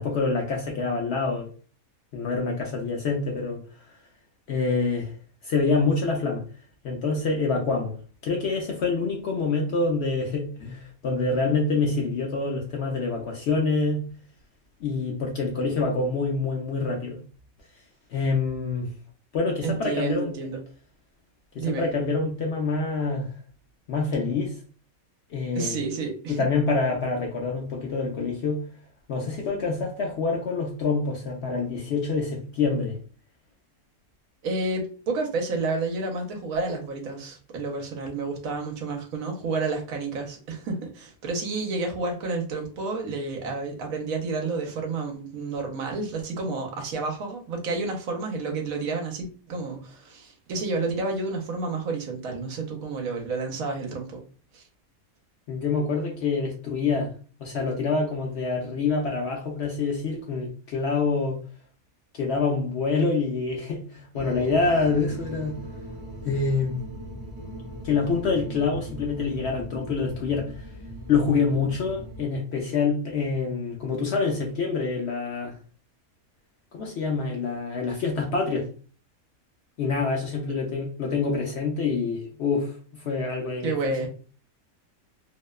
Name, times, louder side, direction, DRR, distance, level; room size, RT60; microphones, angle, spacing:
voice 1, 0.0-1.5 2.1-3.6 4.5-5.1 5.4-6.4 6.8-8.0 8.2-14.1 14.8-17.2 18.1-18.9 19.3-20.3 21.5-23.3 23.9-24.5 25.3-25.8 26.3-28.6 29.1-33.0 55.5-57.1 57.4-61.4 62.1-65.6 66.2-66.8 67.8-70.6 71.1-75.6 76.7-78.7 79.8-84.1, left 4 dB, 65° left, 0.7 m, -26 dB
voice 2, 19.6-20.6 21.6-21.9 25.5-26.4 34.4-54.2 54.5-54.6 83.6-84.1, right 3 dB, 75° right, 1.1 m, -30 dB
sound 1, 64.1-72.3, right 1 dB, 50° right, 0.4 m, -39 dB
2.8 x 2.1 x 2.2 m
omnidirectional pair, 1.5 m